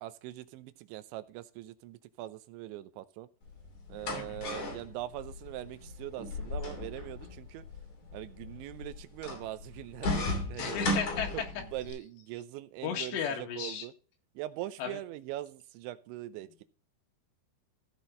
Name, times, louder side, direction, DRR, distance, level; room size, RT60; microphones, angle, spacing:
voice 1, 0.0-3.3 3.9-7.6 8.1-10.8 11.3-11.4 11.7-13.9 14.4-16.6, right 15 dB, 85° right, 13 dB, 3.0 m, -42 dB
sound 1, 3.4-11.9, left 2 dB, 40° left, 3.7 m, -36 dB
voice 2, 4.1-4.5 10.6-11.5 12.8-13.9 14.8-15.0, left 8 dB, 70° left, 2 dB, 3.8 m, -35 dB
15.0 x 6.1 x 3.8 m, 0.39 s
omnidirectional pair, 5.4 m